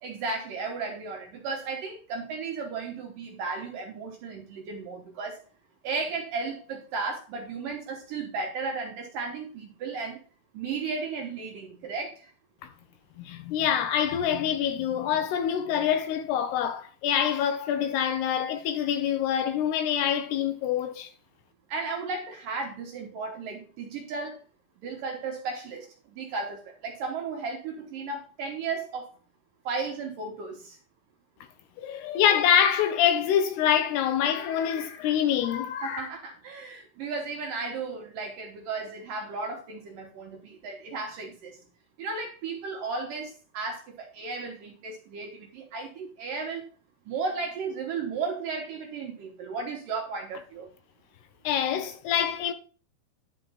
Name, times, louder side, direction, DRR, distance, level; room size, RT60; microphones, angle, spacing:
voice 1, 0.0-5.4 5.8-10.2 10.5-12.3 21.7-24.4 24.8-29.1 29.6-30.8 35.8-41.6 42.0-46.7 47.1-50.7, right 4 dB, 70° right, 2.2 m, -34 dB
voice 2, 13.2-21.1 31.8-36.1 51.4-52.5, left 9 dB, 75° left, 2.6 m, -25 dB
11.5 x 4.5 x 5.5 m
omnidirectional pair, 5.1 m